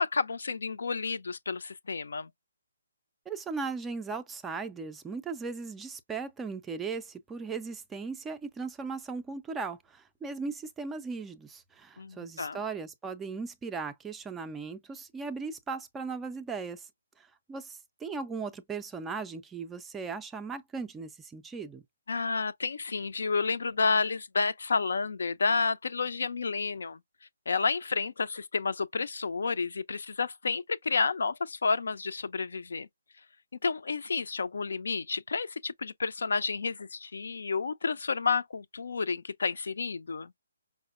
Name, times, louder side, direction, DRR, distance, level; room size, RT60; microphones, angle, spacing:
voice 1, 0.0-2.3 12.0-12.6 22.1-27.0 27.5-32.9 33.6-40.3, left 4 dB, 75° left, 0.4 m, -30 dB
voice 2, 3.3-16.9 17.2-21.8, right 4 dB, 5° right, 0.3 m, -38 dB
4.9 x 2.0 x 2.4 m
hypercardioid pair, 165°, 0 cm